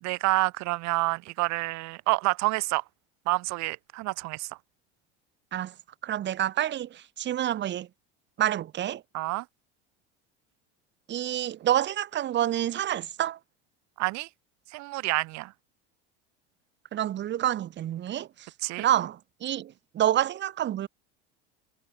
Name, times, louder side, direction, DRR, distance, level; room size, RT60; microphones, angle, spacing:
voice 1, 0.0-2.8 3.3-4.5 9.1-9.4 14.0-14.3 14.7-15.5 18.6-18.9, right 22 dB, 60° right, 1.6 m, -28 dB
voice 2, 6.0-7.9 8.4-9.0 11.1-13.4 16.9-18.3 18.8-20.9, right 11 dB, 35° right, 0.9 m, -28 dB
supercardioid pair, 95°, 32 cm